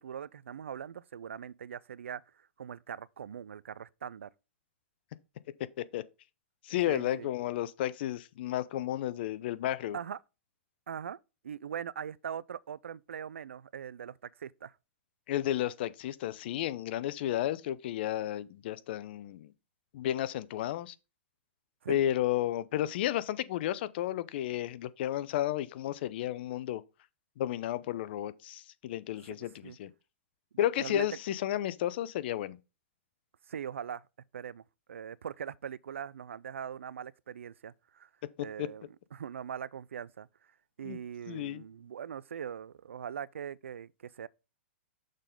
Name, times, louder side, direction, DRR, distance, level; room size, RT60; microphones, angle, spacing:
voice 1, 0.0-4.3 6.9-7.3 9.9-10.2 10.9-11.2 11.4-14.7 21.8-22.0 29.2-29.8 30.8-31.1 33.5-34.0 34.3-34.6 34.9-38.1 38.4-38.8 39.1-40.3 40.8-44.3, right 8 dB, 80° right, 0.4 m, -41 dB
voice 2, 6.6-10.0 15.3-19.5 19.9-20.9 21.9-26.8 27.4-29.9 30.6-32.6 38.4-38.7 40.8-41.0 41.3-41.6, left 12 dB, 55° left, 0.5 m, -32 dB
6.5 x 3.8 x 5.2 m
hypercardioid pair, 125°, 7 cm